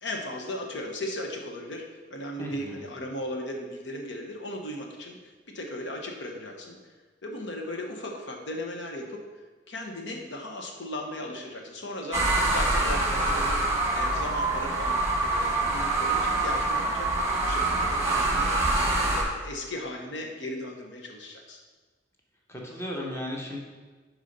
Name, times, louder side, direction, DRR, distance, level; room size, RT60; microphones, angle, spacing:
voice 1, 0.0-1.8 2.1-5.2 5.5-6.8 7.2-9.2 9.7-13.6 13.9-17.1 17.4-18.7 18.9-21.6, left 1 dB, 85° left, 2 dB, 1.1 m, -37 dB
voice 2, 2.4-2.9 22.5-23.6, left 1 dB, 15° left, -1 dB, 1.1 m, -35 dB
sound 1, 12.1-19.2, right 2 dB, 15° right, 1.2 m, -25 dB
6.6 x 4.9 x 5.4 m, 1.3 s
head